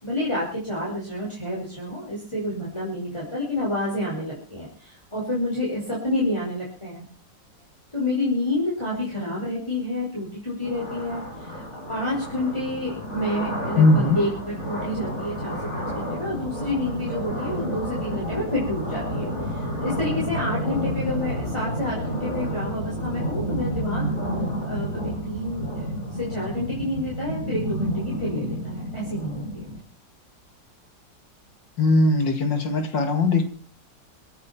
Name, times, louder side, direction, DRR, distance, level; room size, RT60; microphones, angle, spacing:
voice 1, 0.0-7.0 7.9-11.6 11.9-24.1 24.6-29.7, left 1 dB, 15° left, -6 dB, 5.6 m, -29 dB
sound 1, 10.6-29.8, equal, 40° left, 6.0 m, -30 dB
voice 2, 13.8-14.2 31.8-33.4, left 2 dB, 85° left, 7 dB, 3.0 m, -19 dB
25.5 x 10.0 x 4.5 m, 0.41 s
omnidirectional pair, 1.9 m